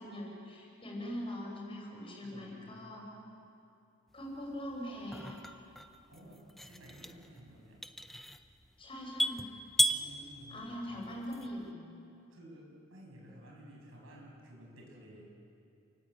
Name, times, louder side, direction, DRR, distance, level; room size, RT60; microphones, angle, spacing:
voice 1, 0.0-3.0 4.1-5.4 8.8-9.5 10.5-11.7, equal, 25° left, -1 dB, 6.0 m, -42 dB
voice 2, 2.2-2.8 6.1-7.8 9.9-10.7 12.3-15.3, right 1 dB, 75° right, -1 dB, 7.3 m, -53 dB
sound 1, 4.2-11.7, equal, ahead, 0.7 m, -36 dB
28.5 x 19.0 x 8.3 m, 2.6 s
head